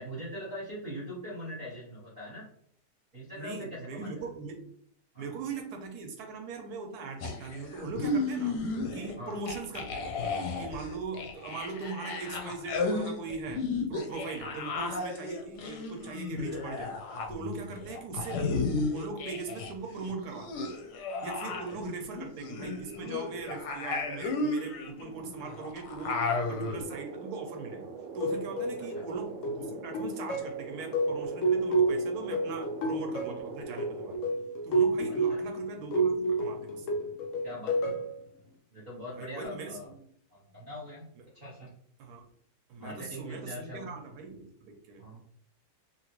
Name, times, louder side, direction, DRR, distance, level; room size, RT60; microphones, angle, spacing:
voice 1, 0.0-2.5 3.1-4.2 5.1-5.3 9.2-9.4 17.7-17.8 21.5-21.8 28.8-29.1 35.1-35.6 37.4-37.9 38.7-39.9 40.3-41.1 41.3-41.7 42.8-43.9 45.0-45.2, equal, 30° right, -7 dB, 0.9 m, -42 dB
voice 2, 3.4-4.7 5.2-8.6 8.9-10.0 10.6-17.0 17.3-20.7 21.2-34.2 34.6-37.0 39.2-40.0 42.0-42.3 42.7-45.0, right 4 dB, 70° right, 4 dB, 1.1 m, -40 dB
sound 1, 7.2-9.2 9.5-19.7 20.0-26.8, left 3 dB, 70° left, 1.0 m, -34 dB
sound 2, 26.8-34.2, right 4 dB, 85° right, 1.3 m, -43 dB
sound 3, 28.2-38.1, right 2 dB, 90° left, 0.6 m, -30 dB
2.9 x 2.8 x 2.9 m, 0.64 s
omnidirectional pair, 2.0 m